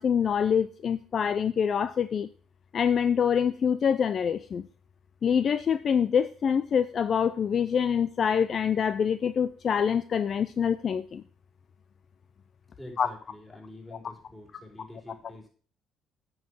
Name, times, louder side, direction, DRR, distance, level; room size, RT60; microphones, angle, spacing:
voice 1, 0.0-2.3 2.7-4.7 5.2-11.2 13.0-13.1, left 7 dB, 50° left, 13 dB, 0.4 m, -25 dB
voice 2, 12.8-15.5, left 2 dB, 10° left, -1 dB, 4.4 m, -46 dB
9.4 x 5.5 x 6.1 m, 0.43 s
supercardioid pair, 65°, 0 cm